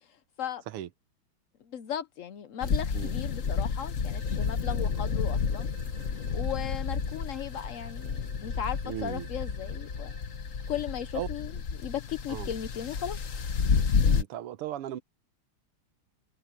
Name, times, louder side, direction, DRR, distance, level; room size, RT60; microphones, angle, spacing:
voice 1, 1.7-5.7 6.3-10.1 10.7-13.2, left 9 dB, 85° left, 0.7 m, -36 dB
sound 1, 2.6-14.2, left 5 dB, 45° left, 1.3 m, -30 dB
sound 2, 3.9-11.5, right 17 dB, 35° right, 4.9 m, -56 dB
voice 2, 8.8-9.3 11.1-11.3 12.3-12.5 14.1-15.0, right 12 dB, 90° right, 1.8 m, -36 dB
omnidirectional pair, 2.4 m